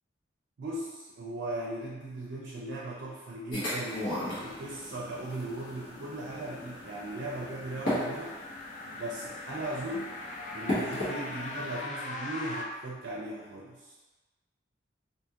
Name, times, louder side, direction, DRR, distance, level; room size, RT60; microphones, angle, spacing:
voice 1, 0.6-8.4 8.9-10.2 10.5-14.0, right 1 dB, 65° right, -4 dB, 0.4 m, -38 dB
sound 1, 3.5-11.8, left 1 dB, 80° left, 1.2 m, -37 dB
sound 2, 4.6-12.6, left 2 dB, 40° left, 0.3 m, -42 dB
2.7 x 2.4 x 2.8 m, 1.2 s
head